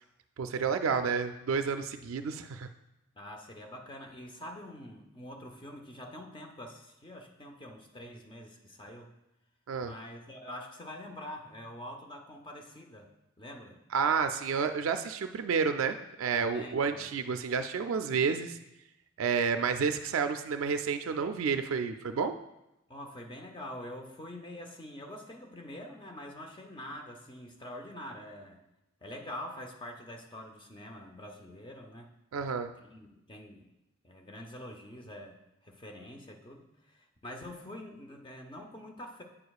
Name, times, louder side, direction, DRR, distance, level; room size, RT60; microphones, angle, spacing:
voice 1, 0.4-2.7 9.7-9.9 13.9-18.6 19.2-22.3 32.3-32.7, right 6 dB, 80° right, 8 dB, 0.4 m, -30 dB
voice 2, 3.2-9.1 9.8-13.8 16.5-17.1 22.9-28.6 29.0-32.1 32.7-33.7 34.0-39.2, left 1 dB, 25° left, 3 dB, 0.6 m, -45 dB
8.5 x 6.6 x 2.3 m, 0.89 s
head